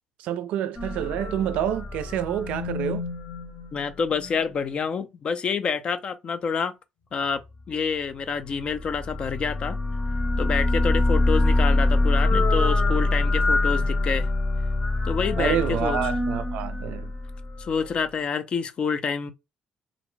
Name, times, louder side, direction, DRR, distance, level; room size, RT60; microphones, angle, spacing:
voice 1, 0.2-3.0 15.4-17.1, right 10 dB, 80° right, 0.3 m, -28 dB
sound 1, 0.8-4.4 8.6-17.8, left 2 dB, 30° left, 0.8 m, -24 dB
voice 2, 3.7-6.7 7.1-7.4 7.7-9.8 10.4-14.3 15.0-16.0 17.6-19.3, left 6 dB, 45° left, 0.5 m, -27 dB
2.5 x 2.1 x 3.1 m
cardioid pair, 90°, 2 cm